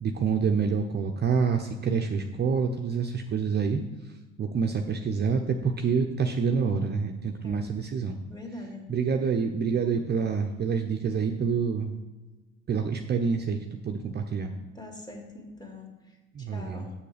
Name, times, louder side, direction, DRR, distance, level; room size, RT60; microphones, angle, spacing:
voice 1, 0.0-3.8 4.4-8.2 8.9-11.9 12.7-14.5 16.3-16.9, right 5 dB, 35° right, 4 dB, 0.7 m, -27 dB
voice 2, 8.3-8.9 14.8-15.9 16.4-16.9, left 2 dB, 15° left, 1 dB, 2.2 m, -42 dB
7.2 x 6.8 x 5.0 m, 1.2 s
hypercardioid pair, 70°, 31 cm